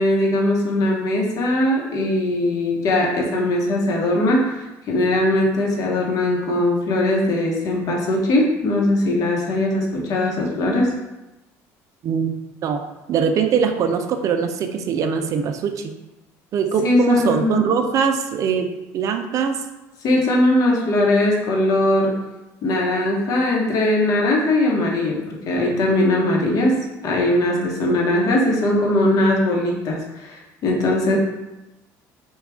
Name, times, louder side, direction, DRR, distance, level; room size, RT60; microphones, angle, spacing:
voice 1, 0.0-10.9 16.8-17.6 20.0-22.2 22.6-26.7 27.0-30.4 30.6-31.2, left 1 dB, 55° left, -1 dB, 1.1 m, -20 dB
voice 2, 13.1-15.9 16.5-19.6, right 6 dB, 50° right, 6 dB, 0.5 m, -22 dB
4.6 x 2.4 x 3.5 m, 1.0 s
supercardioid pair, 100°, 7 cm